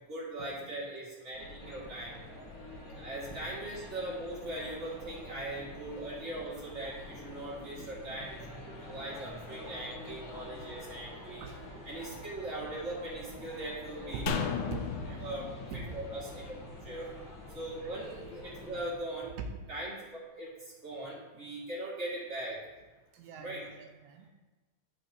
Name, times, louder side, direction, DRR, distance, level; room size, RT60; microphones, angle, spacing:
voice 1, 0.1-2.2 3.0-11.5 11.8-14.3 15.2-15.5 15.9-16.5 16.8-17.1 17.5-19.3 19.7-22.6 23.3-23.6, right 1 dB, 25° right, -6 dB, 1.8 m, -40 dB
sound 1, 1.3-19.0, left 1 dB, 45° left, 1.2 m, -47 dB
voice 2, 8.4-9.0 10.4-10.5 11.1-11.6 14.1-14.4 14.7-15.2 15.7-16.0 19.4-19.5 23.1-24.3, right 6 dB, 80° right, 4 dB, 2.1 m, -42 dB
sound 2, 14.3-17.6 17.9-18.0, left 6 dB, 85° left, 2.1 m, -37 dB
10.5 x 5.4 x 2.7 m, 1.2 s
omnidirectional pair, 3.4 m